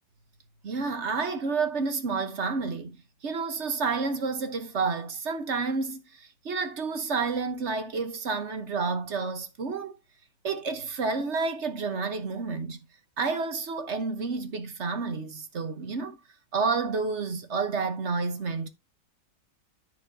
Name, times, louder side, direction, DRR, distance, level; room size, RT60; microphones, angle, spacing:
voice 1, 0.6-3.0 3.2-10.0 10.4-12.8 13.2-16.2 16.5-18.7, right 4 dB, 50° right, 1.2 m, -30 dB
14.0 x 5.0 x 2.7 m
omnidirectional pair, 1.7 m